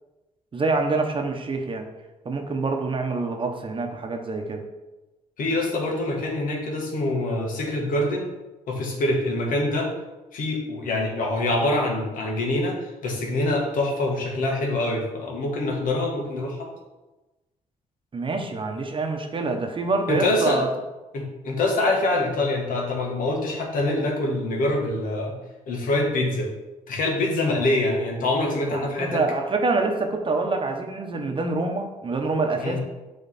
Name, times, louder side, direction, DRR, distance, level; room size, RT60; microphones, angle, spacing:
voice 1, 0.5-1.9 2.2-4.6 18.1-20.7 28.7-32.8, right 3 dB, 35° right, 4 dB, 0.9 m, -26 dB
voice 2, 5.4-8.3 8.7-9.9 10.3-16.7 20.1-20.6 21.1-25.3 25.7-26.5 26.9-29.2 32.6-32.8, left 2 dB, 75° left, 0 dB, 1.5 m, -25 dB
7.0 x 3.4 x 4.2 m, 1.1 s
cardioid pair, 75°, 14 cm